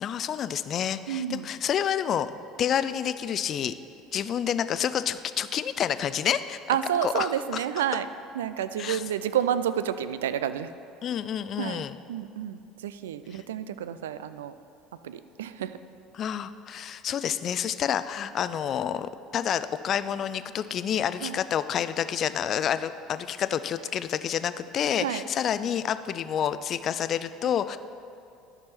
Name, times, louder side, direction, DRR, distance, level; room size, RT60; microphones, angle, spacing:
voice 1, 0.0-2.3 2.6-3.7 4.1-6.6 7.0-7.6 8.8-9.0 11.0-11.9 13.3-13.4 16.1-27.8, left 9 dB, 40° left, 13 dB, 0.3 m, -29 dB
voice 2, 1.1-1.5 6.7-8.1 8.3-10.7 11.6-11.8 12.1-14.5 15.0-15.8 21.2-21.4 25.0-25.2, right 9 dB, 70° right, 13 dB, 0.3 m, -29 dB
10.5 x 6.0 x 4.3 m, 2.7 s
figure-of-eight pair, 65°, 0 cm